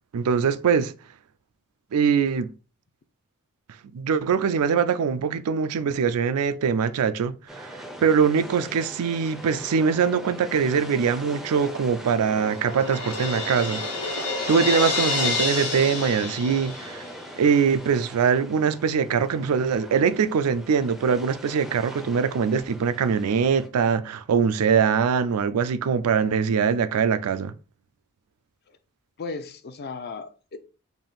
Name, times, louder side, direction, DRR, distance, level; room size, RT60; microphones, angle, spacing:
voice 1, 0.1-0.9 1.9-2.5 3.9-7.7 8.0-13.8 14.5-17.0 17.4-27.5, right 6 dB, 80° right, 0.4 m, -22 dB
sound 1, 7.5-23.7, equal, ahead, 0.5 m, -41 dB
Crash cymbal, 11.6-17.3, left 3 dB, 85° left, 1.2 m, -29 dB
voice 2, 29.2-30.6, left 4 dB, 45° left, 0.5 m, -36 dB
3.5 x 2.6 x 3.9 m
head